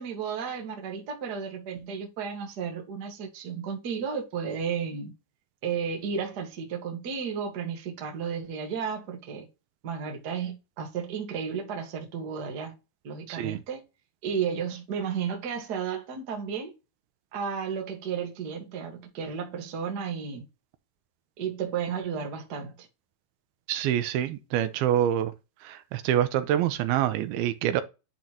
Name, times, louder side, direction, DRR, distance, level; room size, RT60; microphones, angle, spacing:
voice 1, 0.0-5.1 5.6-9.5 9.8-12.7 13.0-13.8 14.2-16.7 17.3-20.5 21.4-22.9, right 6 dB, 50° right, 1.2 m, -33 dB
voice 2, 13.3-13.6 23.7-25.3 25.6-27.8, right 11 dB, 85° right, 2.6 m, -26 dB
10.5 x 3.8 x 2.9 m
omnidirectional pair, 4.3 m